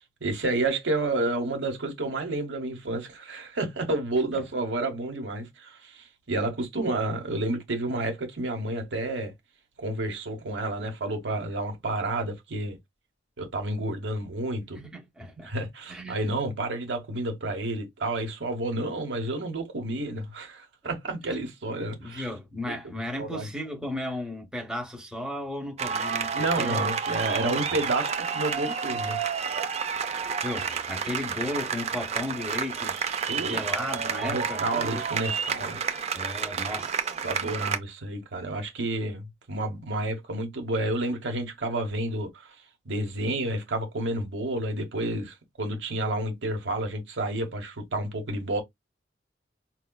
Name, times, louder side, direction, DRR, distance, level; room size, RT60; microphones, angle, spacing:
voice 1, 0.2-9.3 9.8-12.8 13.4-14.8 15.4-22.3 22.7-22.8 23.1-23.5 26.3-29.2 33.3-33.6 34.2-35.8 37.2-42.3 42.8-48.6, right 2 dB, 75° right, 1.1 m, -30 dB
voice 2, 14.7-15.5 15.9-16.2 21.3-21.4 22.0-26.9 27.4-27.6 30.1-33.0 33.4-35.0 36.1-37.2, left 1 dB, 5° right, 0.7 m, -35 dB
sound 1, 25.8-37.8, right 6 dB, 35° right, 0.5 m, -30 dB
4.8 x 2.2 x 2.2 m
head